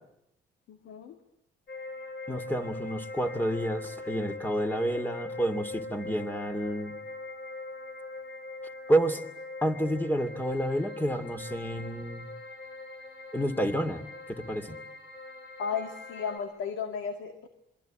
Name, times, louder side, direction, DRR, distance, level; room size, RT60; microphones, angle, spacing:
voice 1, 0.7-1.2 15.6-17.5, left 6 dB, 85° left, 7 dB, 2.1 m, -34 dB
sound 1, 1.7-16.4, left 2 dB, 55° left, 6.3 m, -42 dB
voice 2, 2.3-6.9 8.9-9.2 9.6-12.3 13.3-14.8, right 1 dB, 10° left, 9 dB, 2.6 m, -29 dB
27.5 x 23.0 x 9.1 m, 0.85 s
cardioid pair, 90°, 20 cm